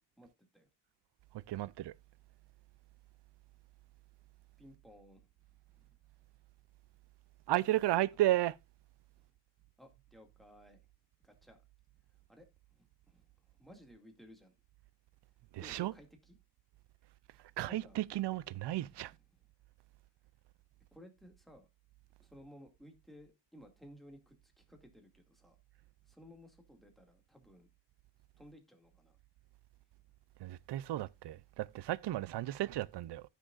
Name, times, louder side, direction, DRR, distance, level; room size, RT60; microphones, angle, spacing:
voice 1, 1.5-1.9 7.5-8.6 15.5-15.9 17.6-19.1 30.4-33.2, right 15 dB, 70° right, 0.5 m, -33 dB
voice 2, 4.6-5.3 5.7-6.0 9.2-9.3 9.8-10.8 11.2-11.6 12.3-12.5 12.7-14.5 15.5-16.4 17.7-18.0 18.8-19.5 20.9-21.7 22.2-25.6 26.1-27.7 28.4-29.2, equal, ahead, 2.1 m, -58 dB
15.5 x 6.4 x 2.4 m
wide cardioid pair, 115°, 43 cm